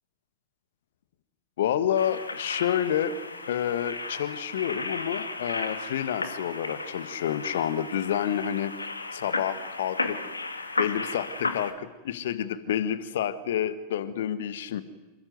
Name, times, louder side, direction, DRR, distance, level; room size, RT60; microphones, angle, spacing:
voice 1, 1.6-3.2 3.5-8.7 9.1-10.2 10.8-14.8, left 10 dB, 60° left, 13 dB, 1.5 m, -29 dB
sound 1, 1.9-11.7, left 3 dB, 80° left, 2.3 m, -34 dB
27.5 x 22.0 x 9.5 m, 1.1 s
figure-of-eight pair, 90°, 0 cm